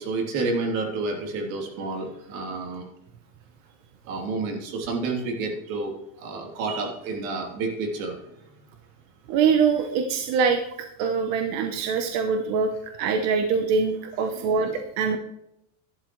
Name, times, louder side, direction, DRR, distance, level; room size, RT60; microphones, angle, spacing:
voice 1, 0.0-2.9 4.0-8.2 14.3-14.7 15.0-15.2, right 3 dB, 70° right, 2 dB, 3.4 m, -30 dB
voice 2, 9.3-10.6 11.0-15.2, right 5 dB, 40° right, 6 dB, 1.0 m, -23 dB
12.0 x 11.5 x 3.2 m, 0.82 s
cardioid pair, 180°, 41 cm